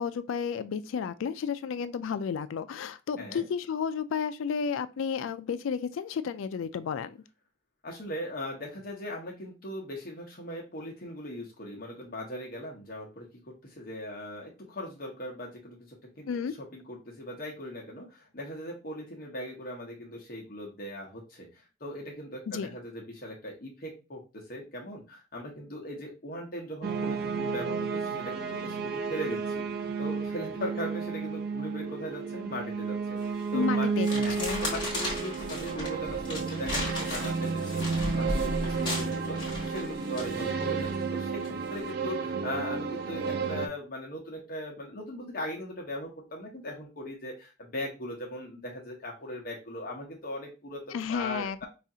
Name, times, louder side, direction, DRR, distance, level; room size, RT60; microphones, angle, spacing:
voice 1, 0.0-7.2 16.3-16.5 22.5-22.7 33.5-34.1 34.4-34.6 50.9-51.7, left 6 dB, 70° left, 0.3 m, -32 dB
voice 2, 3.2-3.5 7.8-34.4 34.6-51.7, left 1 dB, 45° left, 0.8 m, -39 dB
sound 1, 26.8-43.7, right 5 dB, 50° right, 0.4 m, -32 dB
sound 2, 33.2-33.5 34.0-40.9 41.4-41.7, left 1 dB, 25° left, 1.2 m, -36 dB
4.9 x 2.4 x 2.7 m
head